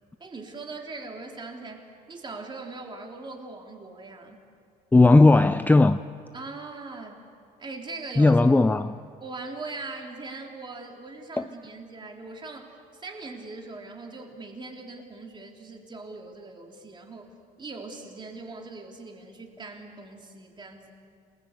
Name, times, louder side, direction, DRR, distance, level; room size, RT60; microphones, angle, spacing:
voice 1, 0.2-4.4 6.3-7.2 7.6-8.4 9.2-20.9, right 3 dB, 25° right, 3.6 m, -40 dB
voice 2, 4.9-6.0 8.2-9.0 11.4-11.5, left 2 dB, 10° left, 0.5 m, -17 dB
27.5 x 20.0 x 8.2 m
cardioid pair, 110°, 17 cm